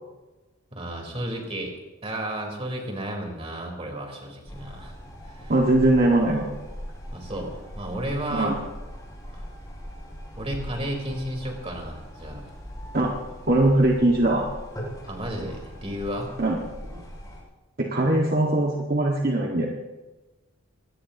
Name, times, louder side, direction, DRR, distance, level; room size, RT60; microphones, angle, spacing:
voice 1, 0.7-1.7 2.0-4.9 5.2-5.5 7.1-8.6 10.4-12.4 15.1-16.3, right 1 dB, 30° right, 0 dB, 4.1 m, -32 dB
sound 1, 4.4-17.4, equal, 20° left, 6.6 m, -40 dB
voice 2, 5.5-6.5 8.3-8.5 12.9-13.1 13.5-14.5 16.4-16.6 17.8-19.7, right 1 dB, 45° right, -1 dB, 1.8 m, -21 dB
23.5 x 19.0 x 3.0 m, 1.2 s
head